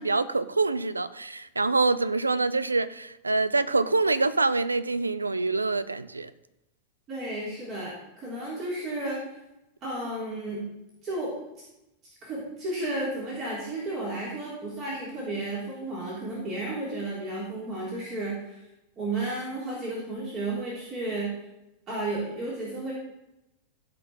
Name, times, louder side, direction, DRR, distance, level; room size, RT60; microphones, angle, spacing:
voice 1, 0.0-6.3, right 3 dB, 80° right, 16 dB, 0.4 m, -25 dB
voice 2, 7.1-9.2 9.8-10.6 11.0-11.3 12.2-18.6 19.0-21.3 21.9-22.9, right 2 dB, 35° right, -6 dB, 3.4 m, -33 dB
15.5 x 5.4 x 4.2 m, 0.93 s
figure-of-eight pair, 90°, 0 cm